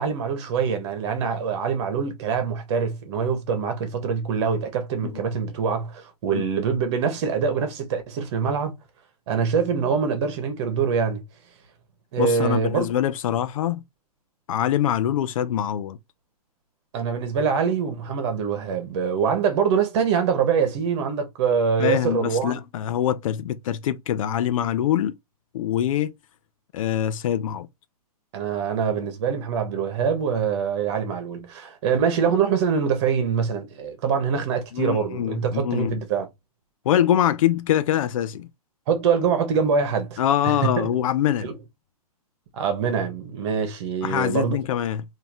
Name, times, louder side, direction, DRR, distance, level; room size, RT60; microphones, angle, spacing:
voice 1, 0.0-8.7 9.3-11.2 12.1-12.9 16.9-22.6 28.3-36.3 38.9-40.2 40.4-40.9 41.4-41.5 42.5-44.6, right 6 dB, 45° right, 1.3 m, -24 dB
voice 2, 12.2-13.8 14.5-16.0 21.8-25.1 25.5-26.1 26.7-27.7 34.7-35.9 36.9-38.5 40.2-41.5 44.0-45.0, left 10 dB, 55° left, 0.5 m, -24 dB
3.7 x 2.8 x 3.0 m
hypercardioid pair, 140°, 20 cm